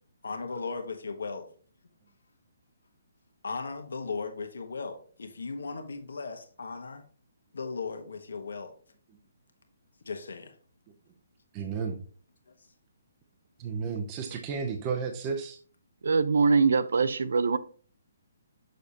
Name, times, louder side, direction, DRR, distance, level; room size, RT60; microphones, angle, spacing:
voice 1, 0.2-1.5 3.4-7.0 7.5-8.7 10.0-10.5, left 4 dB, 90° left, 1.2 m, -37 dB
voice 2, 11.5-12.0 13.6-15.6, right 5 dB, 20° right, 0.6 m, -32 dB
voice 3, 16.0-17.6, right 4 dB, 75° right, 0.6 m, -23 dB
6.6 x 6.5 x 2.8 m
hypercardioid pair, 170°, 0 cm